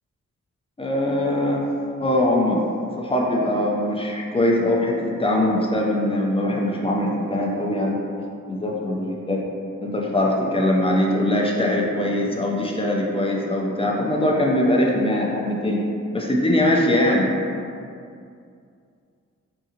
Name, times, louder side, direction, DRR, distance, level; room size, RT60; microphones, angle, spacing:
voice 1, 0.8-1.7 2.0-2.6 3.0-8.0 8.5-9.4 9.8-15.8 16.1-17.3, left 1 dB, 15° left, -1 dB, 0.5 m, -22 dB
2.7 x 2.4 x 2.7 m, 2.4 s
supercardioid pair, 40°, 33 cm